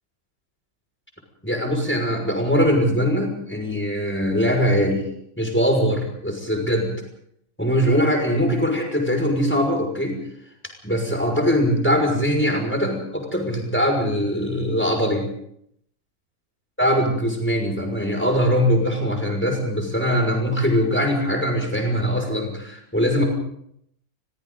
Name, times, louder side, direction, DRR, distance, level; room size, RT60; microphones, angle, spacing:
voice 1, 1.4-5.0 5.4-6.9 7.6-10.2 10.8-15.3 16.8-23.2, equal, 5° left, 3 dB, 5.9 m, -21 dB
30.0 x 23.5 x 4.0 m, 0.71 s
omnidirectional pair, 1.5 m